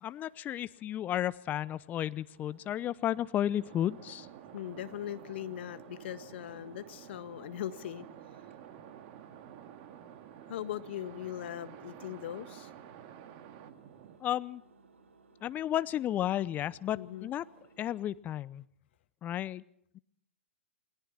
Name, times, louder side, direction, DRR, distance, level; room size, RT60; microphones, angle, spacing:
voice 1, 0.0-4.3 14.2-14.6 15.4-17.4 17.8-18.6 19.2-19.6 19.9-20.0, left 11 dB, 25° left, 18 dB, 0.7 m, -33 dB
Engine, 2.3-17.9, right 4 dB, 70° right, 5.6 m, -61 dB
sound 1, 3.6-14.2, right 10 dB, 40° right, 2.1 m, -51 dB
voice 2, 4.5-8.1 10.5-12.7 16.9-17.3, left 12 dB, 55° left, 11 dB, 1.5 m, -40 dB
29.0 x 21.0 x 4.3 m, 0.69 s
figure-of-eight pair, 115°, 7 cm